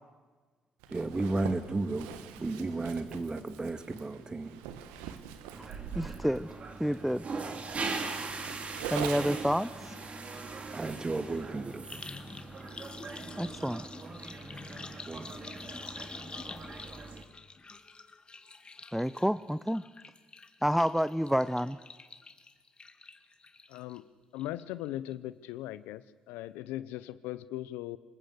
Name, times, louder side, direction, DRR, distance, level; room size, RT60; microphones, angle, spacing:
Zipper (clothing), 0.8-9.5, right 9 dB, 85° right, 1.4 m, -43 dB
voice 1, 0.9-4.6 10.7-12.0 15.1-15.4, right 2 dB, 25° right, 9 dB, 2.2 m, -34 dB
sound 1, 5.5-17.2, right 4 dB, 45° right, 2.9 m, -41 dB
voice 2, 5.9-6.5 6.8-7.2 8.9-9.9 13.4-13.8 18.9-19.8 20.6-21.8, equal, ahead, 14 dB, 0.7 m, -29 dB
sound 2, 8.9-9.1 9.3-24.0 24.4-24.9 25.1-25.2, left 4 dB, 30° left, 1.7 m, -48 dB
voice 3, 23.7-24.1 24.3-28.0, left 14 dB, 80° left, 15 dB, 0.7 m, -39 dB
24.5 x 20.5 x 8.1 m, 1.4 s
supercardioid pair, 55°, 3 cm